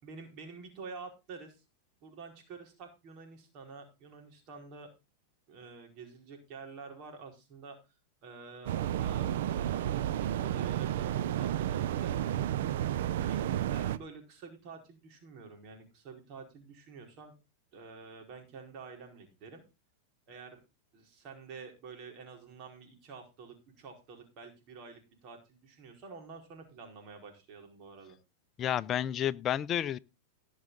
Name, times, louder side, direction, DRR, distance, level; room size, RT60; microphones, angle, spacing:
voice 1, 0.0-1.6 2.0-4.9 5.5-7.8 8.2-12.8 13.2-13.4 13.7-17.3 17.7-19.6 20.3-20.6 20.9-28.2, right 4 dB, 45° right, 4.6 m, -49 dB
sound 1, 8.7-14.0, right 11 dB, 70° right, 0.7 m, -31 dB
voice 2, 28.6-30.0, left 10 dB, 30° left, 0.6 m, -30 dB
18.0 x 6.5 x 3.9 m
hypercardioid pair, 110°, 0 cm